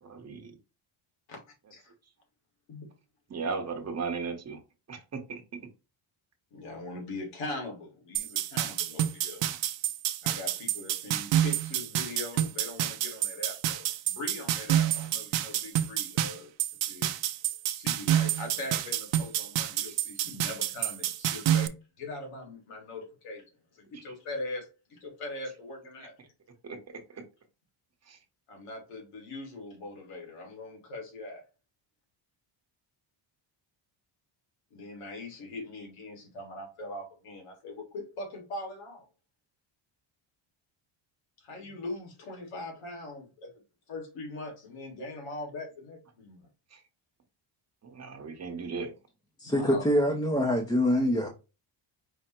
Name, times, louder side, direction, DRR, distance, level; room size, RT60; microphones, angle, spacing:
voice 1, 0.0-0.5 3.3-4.6 4.9-5.4 9.4-9.6 19.9-20.0 23.9-24.0 26.6-26.8 28.1-28.2 46.7-46.8 47.8-48.9, right 4 dB, 30° right, 1.0 m, -36 dB
voice 2, 6.5-9.4 10.2-16.5 16.8-17.1 17.8-23.4 23.7-26.1 28.5-31.4 34.7-39.1 41.4-43.5 43.9-46.5 49.4-50.2, left 2 dB, 85° left, 1.9 m, -41 dB
sound 1, 8.1-21.7, right 12 dB, 60° right, 0.6 m, -28 dB
voice 3, 49.4-51.3, equal, 10° left, 0.5 m, -25 dB
4.9 x 2.1 x 4.3 m
cardioid pair, 145°, 50 cm